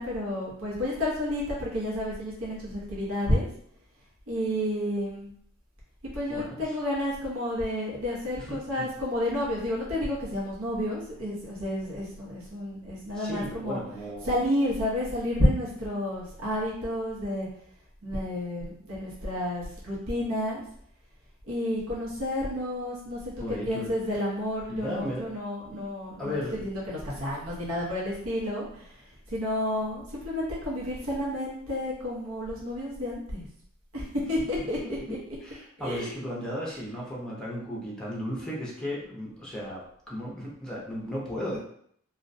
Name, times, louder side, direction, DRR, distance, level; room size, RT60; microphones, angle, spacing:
voice 1, 0.0-3.5 4.3-5.3 6.0-13.8 14.2-17.5 18.0-20.6 21.5-23.2 23.6-26.3 26.6-29.0 29.3-33.5 33.9-34.0 34.3-34.8 35.1-35.2 35.8-36.1, left 1 dB, 85° right, -6 dB, 0.9 m, -30 dB
voice 2, 6.3-6.7 8.4-8.9 13.1-14.5 23.4-24.2 24.7-25.3 25.6-25.8 26.2-26.6 34.8-41.6, equal, 5° left, -5 dB, 0.6 m, -35 dB
2.4 x 2.1 x 2.6 m, 0.65 s
head